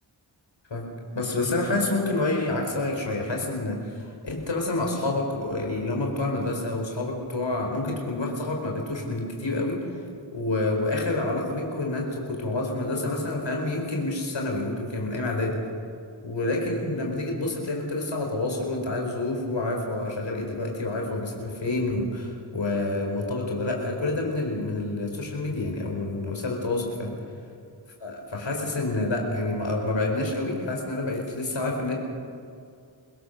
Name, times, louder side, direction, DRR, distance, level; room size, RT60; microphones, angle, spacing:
voice 1, 1.1-9.8 10.3-15.6 16.2-27.2 28.0-31.9, left 2 dB, 75° left, 0 dB, 4.7 m, -28 dB
28.0 x 17.0 x 6.8 m, 2.3 s
cardioid pair, 50°, 45 cm